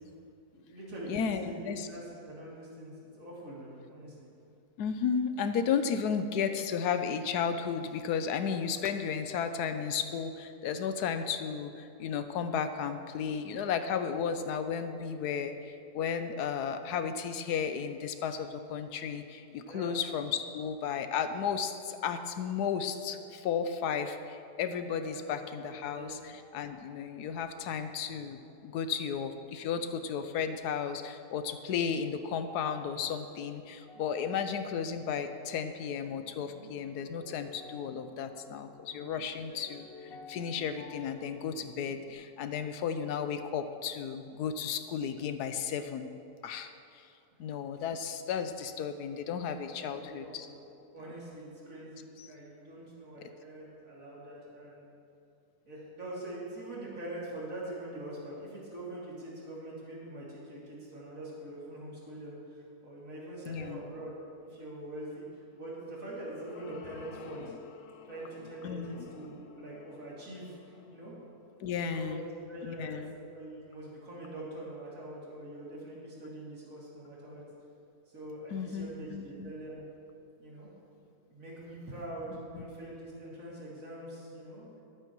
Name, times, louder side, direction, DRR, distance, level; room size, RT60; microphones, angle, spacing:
voice 1, 0.5-4.3 19.6-19.9 25.1-25.2 25.6-26.2 49.6-50.6 50.9-54.9 55.6-64.1 64.4-65.3 65.6-67.5 68.1-70.6 70.9-71.1 71.8-77.4 78.1-79.8 80.4-80.7 81.3-84.7, right 1 dB, 55° right, -6 dB, 3.3 m, -44 dB
voice 2, 1.1-1.9 4.8-46.1 46.4-47.1 47.4-50.5 52.2-52.3 53.2-53.3 63.5-63.8 68.6-69.1 71.6-72.2 72.6-73.1 78.5-79.5 82.5-82.6, left 7 dB, 85° left, 9 dB, 1.2 m, -34 dB
sound 1, 23.1-24.1 24.6-25.7 26.3-26.9 27.3-28.7 29.0-29.9 30.5-31.0 31.3-42.1, left 3 dB, 40° left, 1.1 m, -54 dB
sound 2, 65.7-72.2, left 6 dB, 65° left, 0.9 m, -52 dB
19.5 x 9.2 x 3.1 m, 2.6 s
omnidirectional pair, 1.7 m